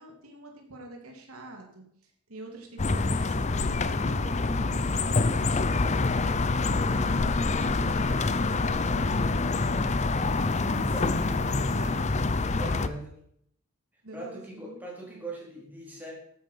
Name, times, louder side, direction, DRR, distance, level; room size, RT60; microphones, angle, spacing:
voice 1, 0.0-9.3 10.1-12.1 12.8-12.9 14.0-15.3, right 1 dB, 80° right, 2 dB, 2.9 m, -45 dB
sound 1, 2.8-12.9, left 3 dB, 30° left, 0.6 m, -26 dB
voice 2, 10.1-11.1 12.3-13.2 14.1-16.1, right 2 dB, 10° right, -4 dB, 4.2 m, -41 dB
13.5 x 8.9 x 5.7 m, 0.66 s
head